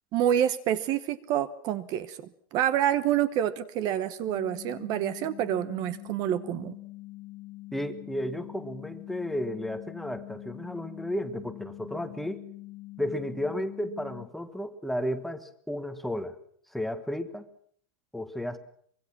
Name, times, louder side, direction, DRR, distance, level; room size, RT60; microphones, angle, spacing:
voice 1, 0.1-2.2 2.5-6.8, right 11 dB, 35° right, 14 dB, 1.1 m, -27 dB
sound 1, 4.3-14.3, left 19 dB, 35° left, 0.9 m, -44 dB
voice 2, 7.7-12.5 13.0-16.4 16.7-17.5 18.1-18.6, left 1 dB, ahead, 8 dB, 1.3 m, -33 dB
24.5 x 23.0 x 6.1 m, 0.62 s
supercardioid pair, 175°, 12 cm